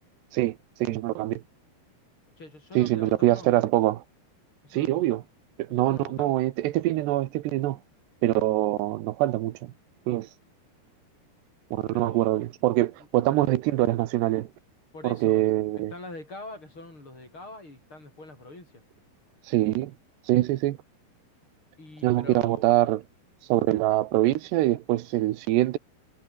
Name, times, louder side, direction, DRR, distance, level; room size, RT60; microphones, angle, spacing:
voice 1, 0.3-1.4 2.7-4.0 4.7-5.2 5.6-7.8 8.2-9.7 10.1-10.3 11.7-14.5 15.0-15.9 19.5-19.9 20.3-20.8 22.0-23.0 23.5-25.8, right 16 dB, 90° right, 3.3 m, -24 dB
voice 2, 2.4-3.5 4.6-5.2 5.7-6.4 11.9-12.5 13.0-13.1 14.9-18.8 21.8-22.8, left 2 dB, 30° left, 8.4 m, -44 dB
omnidirectional pair, 4.7 m